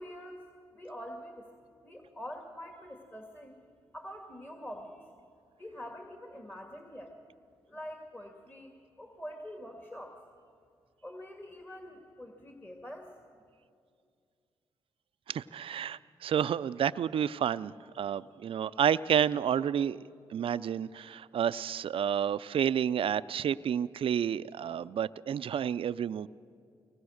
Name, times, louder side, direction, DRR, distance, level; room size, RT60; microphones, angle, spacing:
voice 1, 0.0-1.5 1.8-3.6 3.9-5.1 5.6-7.1 7.7-10.2 11.0-13.1, equal, 20° left, 3 dB, 2.2 m, -45 dB
voice 2, 15.3-20.0 20.3-26.3, right 9 dB, 60° right, 16 dB, 0.4 m, -30 dB
23.5 x 19.5 x 6.5 m, 2.3 s
supercardioid pair, 55°, 10 cm